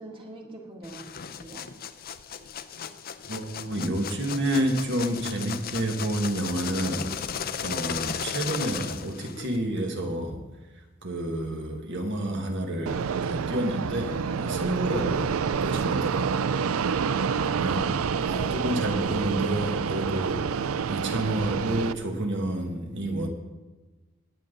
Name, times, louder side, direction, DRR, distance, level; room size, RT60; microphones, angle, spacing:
voice 1, 0.0-1.6 7.4-7.5, right 2 dB, 25° right, 0 dB, 1.8 m, -45 dB
sound 1, 0.8-9.6, left 7 dB, 45° left, 0.6 m, -35 dB
voice 2, 3.3-7.2 7.6-10.5 10.8-16.9 17.4-17.9 18.2-20.6 20.9-23.3, right 1 dB, 60° right, 3 dB, 1.8 m, -30 dB
Fixed-wing aircraft airplane, 12.9-21.9, right 6 dB, 80° right, 0.4 m, -28 dB
18.0 x 8.2 x 3.9 m, 1.2 s
head